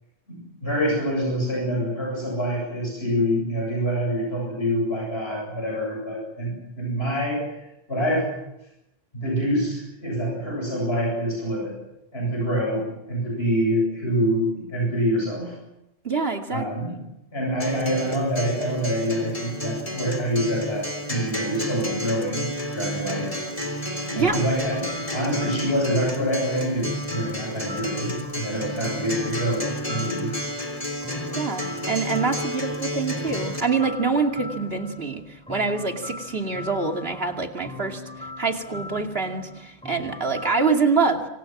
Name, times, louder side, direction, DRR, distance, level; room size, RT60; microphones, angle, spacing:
voice 1, 0.3-7.5 7.9-8.3 9.1-11.8 12.1-15.5 16.5-16.9 17.3-23.4 24.1-30.3, equal, 70° left, -2 dB, 8.2 m, -26 dB
voice 2, 16.0-16.6 24.1-24.4 31.3-41.3, right 4 dB, 65° right, 4 dB, 2.8 m, -25 dB
Acoustic guitar, 17.6-33.6, equal, 35° left, 3.6 m, -31 dB
sound 1, 24.2-40.7, left 2 dB, 5° left, 3.2 m, -40 dB
27.0 x 25.0 x 6.2 m, 0.87 s
omnidirectional pair, 1.1 m